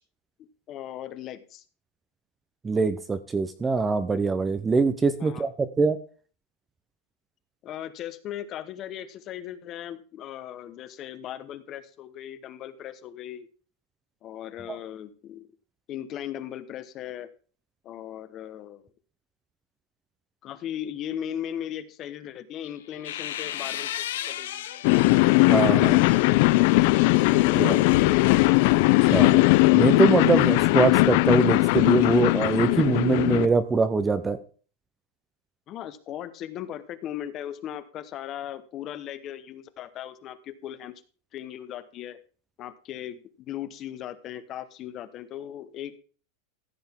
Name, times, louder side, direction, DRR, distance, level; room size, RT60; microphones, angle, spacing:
voice 1, 0.4-1.6 5.2-5.5 7.6-13.5 14.2-15.4 15.9-17.3 17.8-18.8 20.4-24.8 35.7-41.0 41.3-42.2 42.6-46.0, left 11 dB, 25° left, 14 dB, 0.9 m, -38 dB
voice 2, 2.6-6.0 14.7-14.8 25.5-26.1 27.5-27.8 29.1-29.4 29.7-34.4, right 4 dB, 10° right, 11 dB, 0.5 m, -23 dB
sound 1, 22.6-25.3 25.8-29.1, left 11 dB, 75° left, 1.0 m, -36 dB
sound 2, 24.8-33.5, left 21 dB, 45° left, 0.4 m, -19 dB
14.5 x 7.9 x 3.6 m, 0.39 s
supercardioid pair, 175°, 0 cm